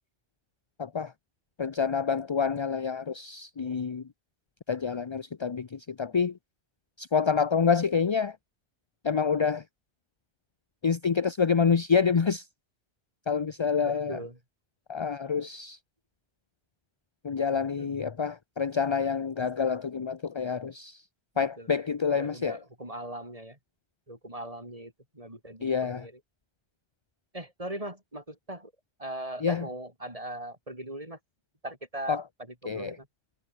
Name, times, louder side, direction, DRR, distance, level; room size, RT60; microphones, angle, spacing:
voice 1, 0.8-1.1 1.6-4.0 4.7-6.3 7.0-8.4 9.0-9.6 10.8-12.5 13.3-14.2 14.9-15.8 17.2-21.0 21.4-22.6 25.6-26.1 29.4-29.7 32.1-32.2 32.7-33.0, left 6 dB, 35° left, 0.5 m, -27 dB
voice 2, 13.8-14.4 17.8-17.9 21.3-21.7 22.1-23.6 24.1-26.2 27.3-28.7 29.0-31.2 31.6-32.2 32.5-33.1, right 1 dB, 30° right, 7.9 m, -40 dB
omnidirectional pair, 1.2 m